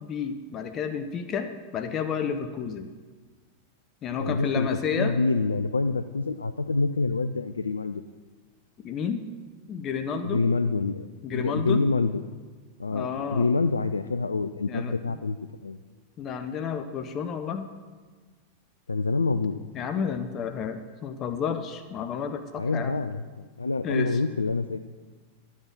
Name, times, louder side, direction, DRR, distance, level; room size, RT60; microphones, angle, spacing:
voice 1, 0.0-2.9 4.0-5.1 8.8-9.2 9.7-10.5 11.2-11.9 12.9-13.5 14.7-15.0 16.2-17.7 19.7-23.0 23.8-24.1, left 7 dB, 30° left, 8 dB, 0.7 m, -31 dB
voice 2, 4.2-8.0 10.2-12.2 12.8-15.4 15.6-15.8 18.9-19.6 22.6-24.8, left 3 dB, 75° left, 10 dB, 0.3 m, -27 dB
11.5 x 7.3 x 6.0 m, 1.4 s
figure-of-eight pair, 90°, 0 cm